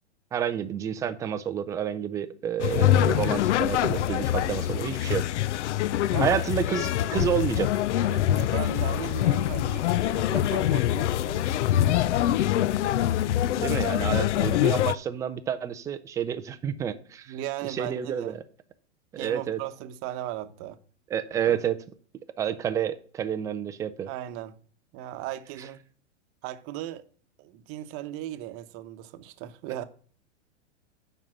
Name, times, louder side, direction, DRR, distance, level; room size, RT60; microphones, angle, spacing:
voice 1, 0.3-5.2 6.2-7.7 13.6-17.3 17.6-18.4 19.2-19.6 21.1-21.8 22.4-24.1, right 8 dB, 10° right, 0.3 m, -29 dB
sound 1, 2.6-14.9, left 12 dB, 70° left, 0.5 m, -24 dB
voice 2, 6.1-6.4 8.0-11.5 17.3-18.4 19.2-20.8 21.5-21.6 24.1-24.6 24.9-25.8 26.4-27.0 27.4-29.8, right 13 dB, 35° right, 0.9 m, -37 dB
7.4 x 5.5 x 7.4 m
hypercardioid pair, 125°, 36 cm